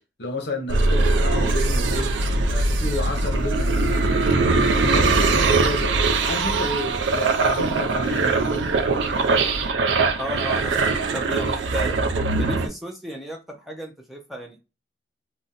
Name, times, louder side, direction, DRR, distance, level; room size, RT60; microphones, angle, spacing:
voice 1, 0.2-2.1 2.5-4.0 4.6-5.9 6.2-8.4, left 2 dB, 60° left, 0.7 m, -31 dB
sound 1, 0.7-12.7, right 3 dB, 75° right, 0.4 m, -21 dB
voice 2, 10.2-12.0 12.4-14.6, right 1 dB, ahead, 0.3 m, -34 dB
2.5 x 2.0 x 3.8 m
head